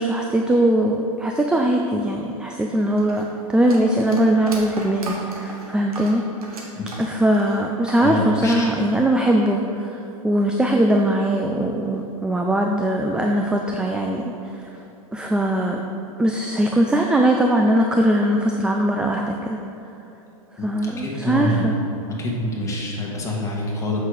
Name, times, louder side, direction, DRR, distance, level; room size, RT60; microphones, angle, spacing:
voice 1, 0.0-6.6 7.0-10.0 10.2-14.7 15.1-15.8 16.2-19.6 20.6-21.8, right 1 dB, 5° right, 2 dB, 0.4 m, -21 dB
sound 1, 3.0-8.1 8.3-9.2, right 2 dB, 85° right, 1.8 m, -37 dB
voice 2, 8.0-8.7 20.6-21.6 22.2-24.0, left 2 dB, 15° left, -3 dB, 1.8 m, -26 dB
8.1 x 6.5 x 5.0 m, 2.9 s
hypercardioid pair, 120°, 19 cm